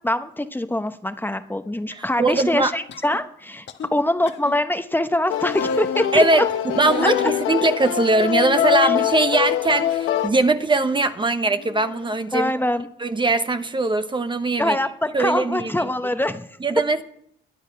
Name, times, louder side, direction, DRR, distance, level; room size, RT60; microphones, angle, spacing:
voice 1, 0.0-6.4 7.0-7.1 8.8-8.9 12.3-12.9 14.6-16.5, left 1 dB, 10° left, 1.0 m, -24 dB
voice 2, 1.9-2.7 6.1-6.4 6.7-12.5 13.0-14.8 15.1-15.7 16.6-17.0, right 2 dB, 25° right, 1.0 m, -21 dB
sound 1, 2.9-3.2 3.7-3.9 4.2-4.5 5.4-5.9 6.7-7.5 8.5-9.1 9.6-10.4 10.7-11.0 11.4-12.2 13.5-13.6, left 7 dB, 65° left, 1.4 m, -39 dB
sound 2, 5.3-10.3, left 10 dB, 90° left, 1.1 m, -23 dB
20.5 x 10.5 x 5.8 m
cardioid pair, 90°, 20 cm